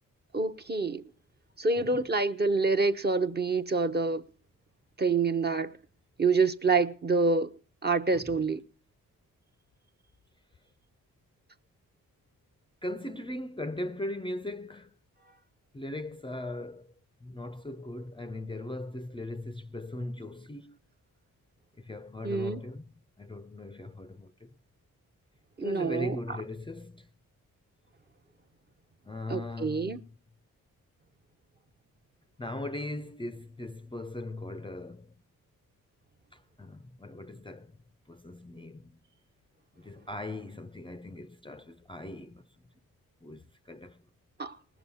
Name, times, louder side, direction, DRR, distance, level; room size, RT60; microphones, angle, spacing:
voice 1, 0.3-1.0 1.6-4.2 5.0-5.7 6.2-7.5 7.8-8.6 22.2-22.6 25.6-26.4 29.3-30.0 44.4-44.6, right 4 dB, 30° right, 0.8 m, -27 dB
voice 2, 12.8-14.9 15.7-16.9 17.2-20.8 21.8-22.9 23.2-24.5 25.6-27.1 29.0-30.1 32.4-35.1 36.3-37.7 38.1-39.0 39.8-42.4 43.2-44.0, left 1 dB, 15° left, 0.5 m, -39 dB
19.0 x 7.0 x 5.5 m
cardioid pair, 55°, 35 cm